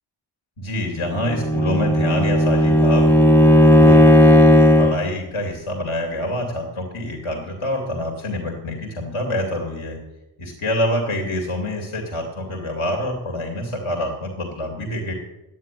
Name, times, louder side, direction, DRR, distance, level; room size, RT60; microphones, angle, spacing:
voice 1, 0.6-3.2 3.8-4.1 4.8-10.0 10.4-15.1, left 1 dB, 75° left, 1 dB, 2.4 m, -26 dB
Bowed string instrument, 1.2-5.1, equal, 5° left, 0.6 m, -14 dB
12.0 x 9.7 x 9.1 m, 1.1 s
wide cardioid pair, 105°, 50 cm